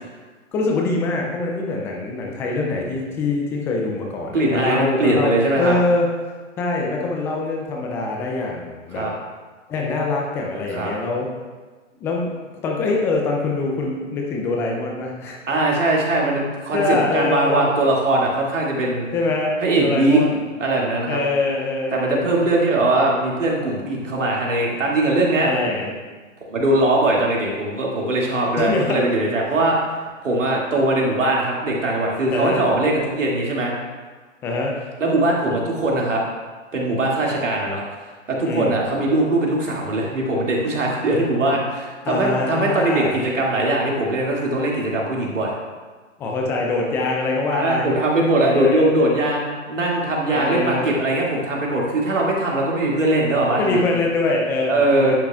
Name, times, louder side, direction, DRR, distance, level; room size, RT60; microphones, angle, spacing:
voice 1, 0.5-6.1 6.6-9.1 9.7-11.3 12.0-12.4 12.6-15.4 16.7-17.6 19.1-20.4 21.1-22.4 25.4-26.0 28.6-29.0 32.3-32.6 34.4-34.8 38.4-38.8 42.0-43.1 46.2-47.9 48.4-48.9 50.3-50.9 53.6-55.2, left 3 dB, 5° left, 0 dB, 0.4 m, -24 dB
voice 2, 4.3-5.7 8.9-9.1 10.7-10.9 15.5-19.1 19.6-20.2 20.6-21.2 21.9-25.5 26.4-29.9 30.2-33.7 35.0-36.2 36.7-37.8 38.3-45.5 47.5-53.8 54.7-55.2, right 2 dB, 75° right, -2 dB, 2.5 m, -20 dB
10.5 x 8.5 x 2.4 m, 1.4 s
hypercardioid pair, 125°, 38 cm